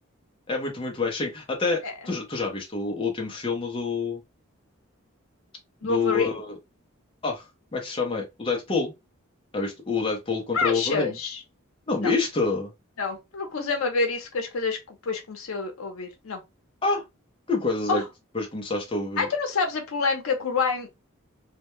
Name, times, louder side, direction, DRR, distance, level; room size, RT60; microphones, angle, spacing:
voice 1, 0.5-4.2 5.8-6.6 7.2-7.4 7.7-8.9 9.5-11.2 11.9-12.7 16.8-17.0 17.5-18.0 18.3-19.3, left 4 dB, 25° left, 0.5 m, -27 dB
voice 2, 5.8-6.3 10.5-11.4 12.0-12.1 13.0-16.4 17.9-18.0 19.2-20.9, left 4 dB, 80° left, 0.6 m, -27 dB
2.1 x 2.1 x 2.9 m
head